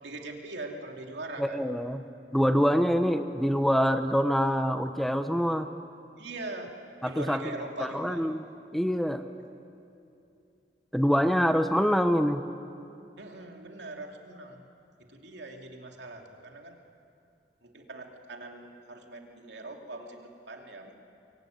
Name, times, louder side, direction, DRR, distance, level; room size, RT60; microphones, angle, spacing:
voice 1, 0.0-1.6 6.2-6.7 7.0-8.2 13.2-14.6 15.0-16.7 17.6-21.0, right 2 dB, 85° right, 2 dB, 2.8 m, -41 dB
voice 2, 1.4-2.0 2.3-5.7 7.0-7.4 7.8-8.4 8.7-9.3 10.9-12.4, equal, ahead, 8 dB, 0.7 m, -25 dB
24.0 x 22.5 x 9.3 m, 2.7 s
head